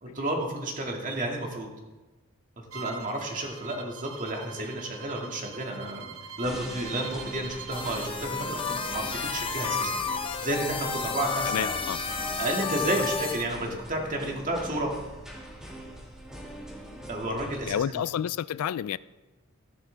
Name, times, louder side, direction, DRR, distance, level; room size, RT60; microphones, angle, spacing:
voice 1, 0.0-1.7 2.6-11.7 12.4-14.9 17.1-18.0, right 1 dB, 35° right, 1 dB, 2.0 m, -32 dB
Bowed string instrument, 2.7-8.1, right 6 dB, 70° right, 0.9 m, -44 dB
sound 1, 6.4-17.7, equal, 5° right, 1.9 m, -43 dB
sound 2, 7.7-13.4, left 4 dB, 25° left, 1.0 m, -31 dB
voice 2, 11.5-12.0 17.7-19.0, left 9 dB, 85° left, 19 dB, 0.3 m, -30 dB
14.5 x 11.0 x 3.4 m, 1.2 s
head